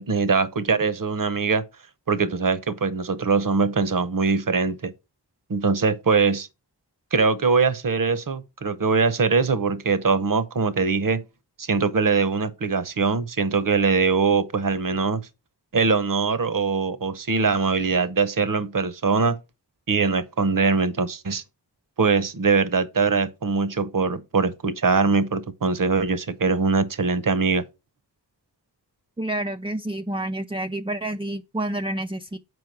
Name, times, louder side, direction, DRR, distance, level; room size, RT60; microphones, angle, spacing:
voice 1, 0.0-1.6 2.1-4.9 5.5-6.5 7.1-11.2 11.6-15.2 15.7-19.4 19.9-21.4 22.0-27.6, right 4 dB, 50° right, 0.8 m, -22 dB
voice 2, 29.2-32.4, right 1 dB, 15° right, 0.4 m, -29 dB
7.9 x 4.7 x 4.6 m
wide cardioid pair, 50°, 43 cm